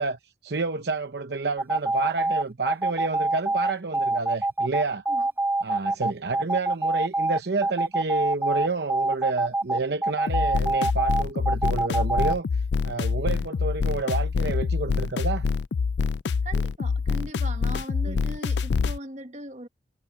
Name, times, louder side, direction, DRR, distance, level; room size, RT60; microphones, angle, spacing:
voice 1, 0.0-5.0 5.6-15.5 18.0-18.2, right 3 dB, 65° right, 0.8 m, -29 dB
sound 1, 1.6-12.3, right 2 dB, 10° right, 0.9 m, -24 dB
sound 2, 10.3-19.0, left 5 dB, 70° left, 0.4 m, -26 dB
voice 2, 16.4-19.7, right 1 dB, 40° right, 1.7 m, -39 dB
head